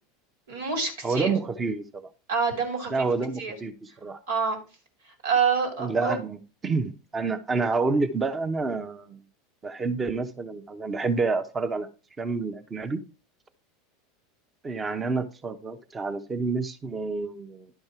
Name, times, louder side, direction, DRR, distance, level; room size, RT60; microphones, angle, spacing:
voice 1, 0.5-1.3 2.3-3.1 3.4-3.6 4.3-4.6 5.2-6.1, right 5 dB, 75° right, 3.1 m, -26 dB
voice 2, 1.0-2.0 2.9-4.2 5.8-6.4 6.6-9.2 9.6-11.9 12.2-13.0 14.6-17.7, right 4 dB, 25° right, 1.1 m, -28 dB
11.0 x 5.3 x 4.6 m
hypercardioid pair, 90°, 0 cm